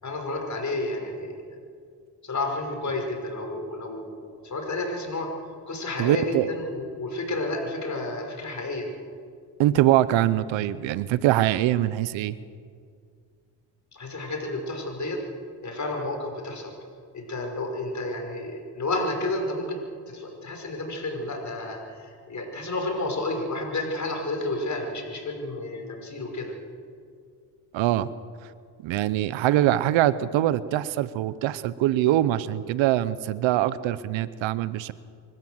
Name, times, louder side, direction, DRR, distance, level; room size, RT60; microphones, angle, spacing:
voice 1, 0.0-1.6 2.2-5.3 5.7-8.9 13.9-15.2 15.6-16.7 17.1-19.8 20.1-26.5, left 2 dB, 40° left, 3 dB, 5.5 m, -31 dB
voice 2, 6.0-6.5 9.6-12.4 27.7-28.1 28.8-34.9, right 13 dB, 85° right, 17 dB, 0.9 m, -23 dB
25.0 x 13.5 x 7.9 m, 2.1 s
supercardioid pair, 70°, 45 cm